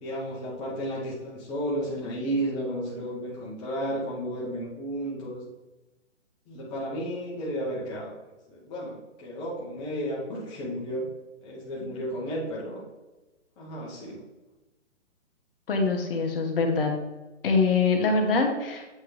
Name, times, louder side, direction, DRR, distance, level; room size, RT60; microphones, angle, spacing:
voice 1, 0.0-5.4 6.5-8.2 8.5-11.1 11.4-12.8 13.6-14.2, equal, 15° left, -6 dB, 0.8 m, -33 dB
voice 2, 15.7-16.9 17.4-18.9, left 4 dB, 50° left, 3 dB, 1.2 m, -24 dB
8.0 x 3.7 x 3.2 m, 1.1 s
hypercardioid pair, 155°, 36 cm